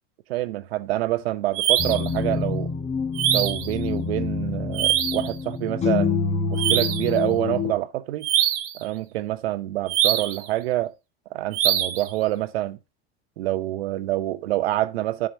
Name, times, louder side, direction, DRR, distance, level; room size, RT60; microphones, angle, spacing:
voice 1, 0.3-2.7 3.3-6.2 6.5-8.3 8.7-10.9 11.3-12.8 13.4-15.3, right 15 dB, 90° right, 0.8 m, -26 dB
sound 1, 1.5-2.1 3.1-3.7 4.7-5.3 6.6-7.1 8.2-8.8 9.9-10.4 11.5-12.1, right 11 dB, 65° right, 1.4 m, -23 dB
sound 2, 1.8-7.7, left 5 dB, 20° left, 1.2 m, -27 dB
13.0 x 4.9 x 2.7 m
supercardioid pair, 115°, 30 cm